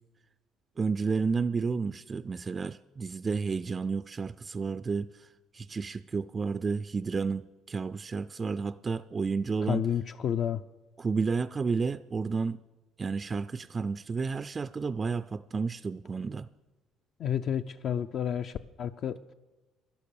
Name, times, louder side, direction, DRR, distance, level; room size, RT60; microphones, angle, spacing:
voice 1, 0.8-7.4 7.7-9.8 11.0-12.6 13.0-16.5, right 4 dB, 30° right, 13 dB, 0.3 m, -31 dB
voice 2, 9.7-10.6 17.2-19.3, left 9 dB, 55° left, 9 dB, 0.5 m, -30 dB
11.5 x 11.5 x 7.0 m, 1.1 s
cardioid pair, 105°, 0 cm